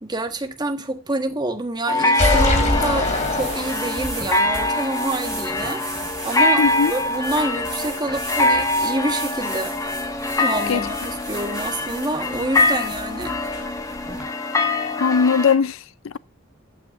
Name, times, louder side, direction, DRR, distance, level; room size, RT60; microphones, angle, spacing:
voice 1, 0.0-5.8 6.2-6.6 6.9-9.7 10.3-13.4, right 2 dB, 20° right, 1.4 m, -27 dB
sound 1, 1.9-15.5, left 2 dB, 15° left, 1.5 m, -24 dB
sound 2, 2.1-4.2, left 2 dB, 35° left, 2.6 m, -21 dB
sound 3, 3.0-14.2, right 2 dB, 5° right, 5.2 m, -36 dB
voice 2, 6.6-6.9 10.7-10.8 15.0-16.2, left 6 dB, 75° left, 0.5 m, -19 dB
15.0 x 8.7 x 2.5 m
head